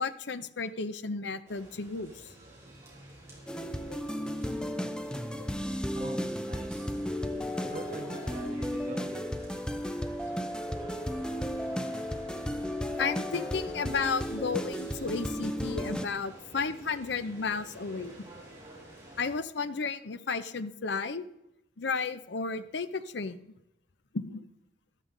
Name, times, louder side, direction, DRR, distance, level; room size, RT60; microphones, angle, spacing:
voice 1, 0.0-2.3 3.9-4.0 5.4-5.5 13.0-18.2 19.2-21.2 21.8-23.5 24.1-24.5, left 4 dB, 65° left, 13 dB, 0.6 m, -33 dB
sound 1, 1.5-19.4, right 1 dB, 15° right, 3.8 m, -49 dB
sound 2, 3.5-16.1, equal, 5° left, 0.6 m, -34 dB
voice 2, 5.9-6.9 7.7-9.2, right 2 dB, 45° right, 1 dB, 1.4 m, -44 dB
13.5 x 12.5 x 3.9 m, 0.82 s
head